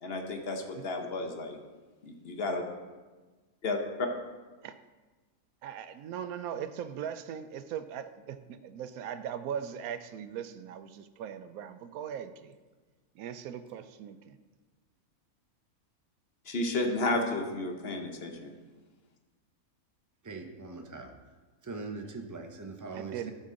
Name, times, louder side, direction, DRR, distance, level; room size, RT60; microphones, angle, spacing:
voice 1, 0.0-1.6 2.0-2.6 3.6-4.1 16.5-18.5, left 2 dB, 50° left, 4 dB, 1.0 m, -32 dB
voice 2, 5.6-12.5 13.2-14.4 22.9-23.3, right 8 dB, 75° right, 11 dB, 1.0 m, -39 dB
voice 3, 20.2-21.2 21.6-23.3, right 3 dB, 30° right, 3 dB, 0.3 m, -41 dB
12.5 x 5.3 x 3.8 m, 1.3 s
omnidirectional pair, 1.5 m